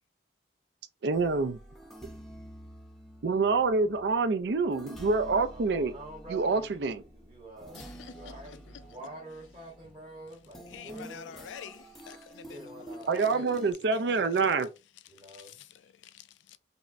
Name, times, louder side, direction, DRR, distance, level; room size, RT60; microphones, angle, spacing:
voice 1, 1.0-1.6 3.2-5.9 6.3-7.0 13.1-14.7, right 4 dB, 65° right, 0.5 m, -26 dB
sound 1, 1.1-13.7, right 1 dB, ahead, 0.6 m, -49 dB
voice 2, 5.5-11.5 12.4-14.5 15.1-15.6, right 2 dB, 30° right, 1.1 m, -47 dB
voice 3, 7.7-8.4 10.7-12.9 14.1-14.2 15.3-16.6, left 8 dB, 80° left, 0.3 m, -48 dB
5.3 x 2.1 x 2.6 m
head